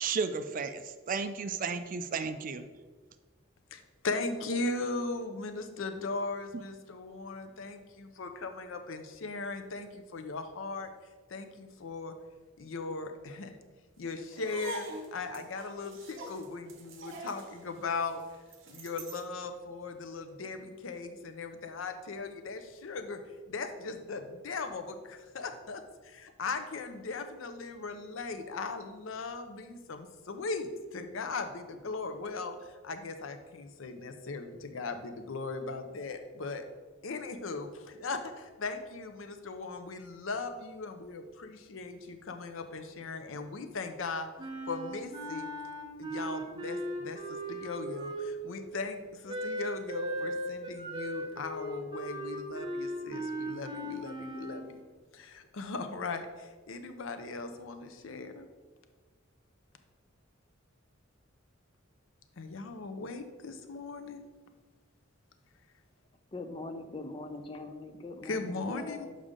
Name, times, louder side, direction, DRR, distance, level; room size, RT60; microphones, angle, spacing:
voice 1, 0.0-2.6, right 5 dB, 40° right, 10 dB, 0.4 m, -33 dB
voice 2, 3.7-12.2 12.6-13.6 14.0-18.2 18.7-36.6 37.0-44.3 44.7-45.5 46.0-54.8 55.1-58.5 62.4-64.2 68.2-69.1, left 3 dB, 75° left, 8 dB, 0.6 m, -38 dB
sound 1, 14.3-19.3, right 2 dB, 65° right, 0.9 m, -44 dB
Wind instrument woodwind instrument, 44.4-48.5 49.3-54.7, right 1 dB, 20° right, 0.9 m, -37 dB
voice 3, 66.3-69.2, left 2 dB, 25° left, 7 dB, 0.5 m, -42 dB
6.6 x 5.0 x 3.7 m, 1.4 s
head